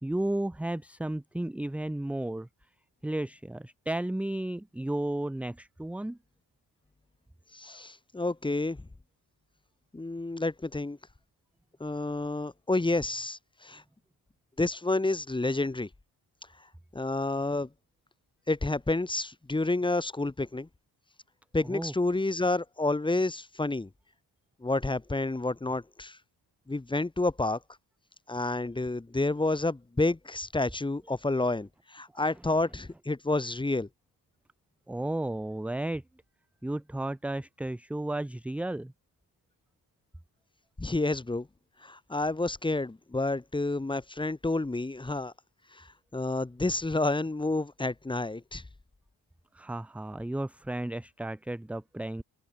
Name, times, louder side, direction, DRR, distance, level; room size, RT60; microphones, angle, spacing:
voice 1, 0.0-2.5 3.0-6.2 21.6-21.9 31.4-31.5 32.1-32.2 34.9-36.0 36.6-38.9 49.5-52.2, right 1 dB, 5° right, 0.5 m, -33 dB
voice 2, 7.5-8.8 9.9-11.0 11.8-13.8 14.6-15.9 16.9-17.7 18.5-20.7 21.5-23.9 24.6-26.2 26.7-27.6 28.3-33.9 40.8-41.5 41.8-45.3 45.7-45.9 46.1-48.6, left 2 dB, 10° left, 1.3 m, -29 dB
cardioid pair, 125°, 39 cm